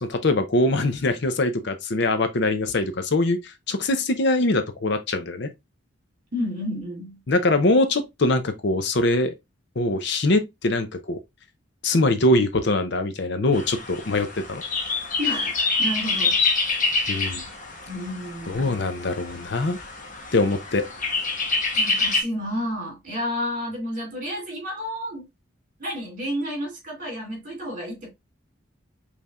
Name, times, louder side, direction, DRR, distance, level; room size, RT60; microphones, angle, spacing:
voice 1, 0.0-5.5 7.3-9.3 9.8-11.2 11.8-14.6 17.1-17.4 18.5-19.8 20.3-20.8, left 2 dB, 55° left, 0.6 m, -23 dB
voice 2, 6.3-7.2 15.2-16.5 17.9-18.9 21.8-25.3 25.8-28.1, equal, 40° right, 2.5 m, -31 dB
sound 1, 13.5-22.2, left 3 dB, 40° left, 1.0 m, -26 dB
5.4 x 3.3 x 2.3 m
head